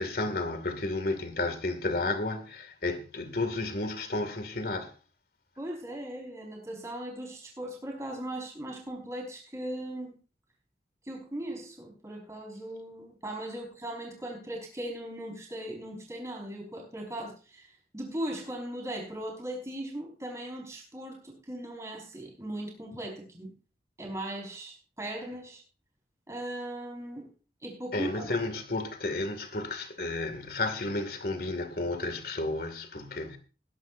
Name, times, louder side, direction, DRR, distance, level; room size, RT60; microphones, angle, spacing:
voice 1, 0.0-4.9 27.9-33.4, left 2 dB, 55° left, 2.3 m, -32 dB
voice 2, 5.6-10.2 11.1-17.7 17.9-23.5 24.0-25.6 26.3-27.3 27.6-28.3, right 1 dB, 15° right, 5.2 m, -38 dB
20.5 x 11.0 x 2.7 m
head